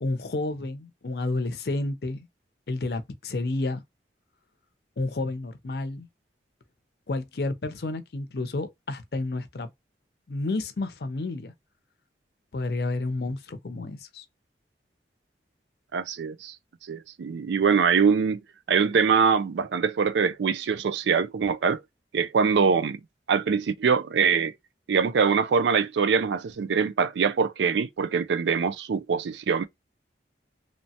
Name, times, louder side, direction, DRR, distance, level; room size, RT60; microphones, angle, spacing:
voice 1, 0.0-2.3 2.7-3.8 5.0-6.1 7.1-9.7 10.3-11.5 12.5-14.2, left 2 dB, 60° left, 0.6 m, -30 dB
voice 2, 15.9-16.5 16.9-18.4 18.7-21.8 22.1-23.0 23.3-24.5 24.9-29.6, right 6 dB, 80° right, 0.4 m, -23 dB
3.1 x 2.0 x 2.8 m
head